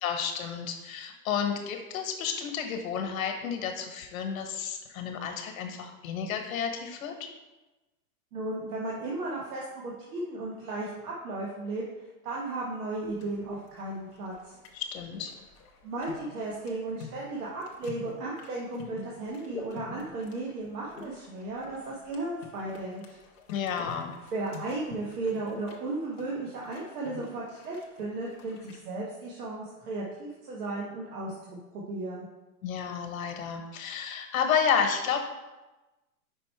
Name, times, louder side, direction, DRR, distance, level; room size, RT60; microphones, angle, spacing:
voice 1, 0.0-7.3 14.7-15.3 23.5-24.1 32.6-35.3, left 7 dB, 60° left, 5 dB, 1.1 m, -31 dB
voice 2, 8.3-11.8 12.2-14.6 15.8-23.2 24.3-32.3, right 2 dB, 75° right, -4 dB, 1.4 m, -35 dB
sound 1, 13.0-28.8, left 4 dB, 20° left, 0.4 m, -48 dB
5.3 x 4.4 x 4.4 m, 1.1 s
supercardioid pair, 155°, 46 cm